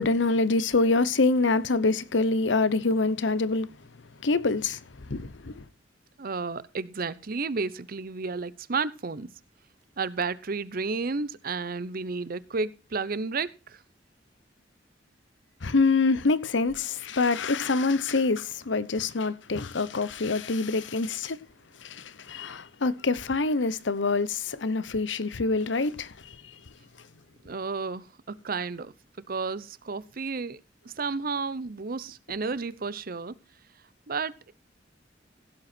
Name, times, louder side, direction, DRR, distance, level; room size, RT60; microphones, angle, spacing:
voice 1, 0.0-3.7 4.2-5.6 15.6-21.4 21.8-26.5, left 3 dB, 85° left, 0.9 m, -26 dB
voice 2, 6.2-9.3 10.0-13.8 27.4-28.9 29.3-33.4 34.1-34.5, right 4 dB, 50° right, 0.7 m, -32 dB
16.0 x 8.0 x 4.3 m
head